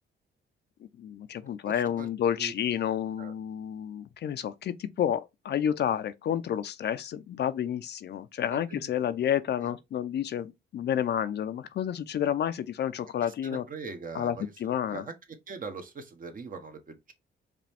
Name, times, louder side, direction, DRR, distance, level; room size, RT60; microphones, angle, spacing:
voice 1, 1.0-13.7 14.1-15.1, left 9 dB, 60° left, 0.6 m, -30 dB
voice 2, 1.6-2.1 2.4-2.5 3.2-3.3 8.5-8.9 13.2-14.5 14.9-15.1 15.5-17.1, right 4 dB, 45° right, 1.2 m, -41 dB
5.0 x 3.0 x 3.5 m
cardioid pair, 90°, 20 cm